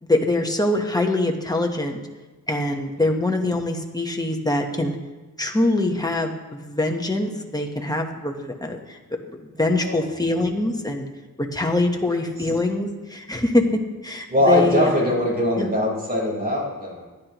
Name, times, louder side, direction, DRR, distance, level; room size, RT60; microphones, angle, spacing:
voice 1, 0.0-2.0 2.5-5.0 5.4-9.0 9.6-11.1 11.5-13.6 14.0-15.1 15.5-15.7, left 2 dB, 10° left, 2 dB, 1.1 m, -23 dB
voice 2, 9.7-10.1 14.3-17.1, left 1 dB, 25° right, -3 dB, 4.2 m, -22 dB
18.5 x 12.0 x 3.0 m, 1.2 s
wide cardioid pair, 160°, 36 cm